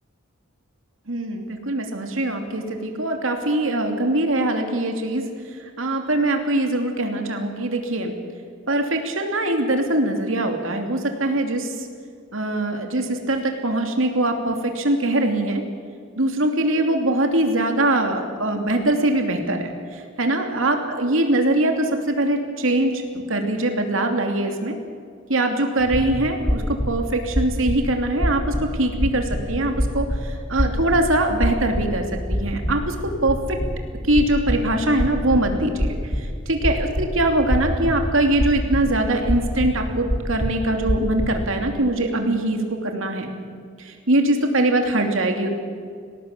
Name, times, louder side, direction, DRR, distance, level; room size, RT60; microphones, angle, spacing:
voice 1, 1.1-5.3 5.8-8.1 8.7-11.9 12.3-15.6 16.2-24.8 25.3-33.6 34.1-43.3 43.8-45.5, right 1 dB, 70° right, 4 dB, 2.9 m, -22 dB
sound 1, 25.8-41.7, equal, 15° left, 1.8 m, -26 dB
19.5 x 18.0 x 8.4 m, 2.1 s
head